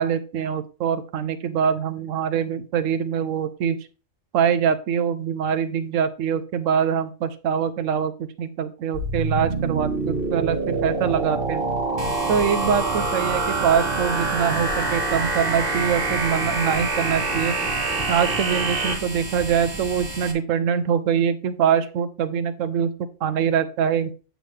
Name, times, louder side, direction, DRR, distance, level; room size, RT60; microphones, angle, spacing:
voice 1, 0.0-3.8 4.3-11.6 12.3-17.6 18.1-22.9 23.2-24.1, right 7 dB, 80° right, 11 dB, 1.1 m, -24 dB
sound 1, 8.9-18.9, right 3 dB, 45° right, 1.4 m, -25 dB
sound 2, 12.0-20.3, right 2 dB, 20° right, 1.2 m, -34 dB
7.5 x 7.0 x 3.2 m, 0.35 s
omnidirectional pair, 1.3 m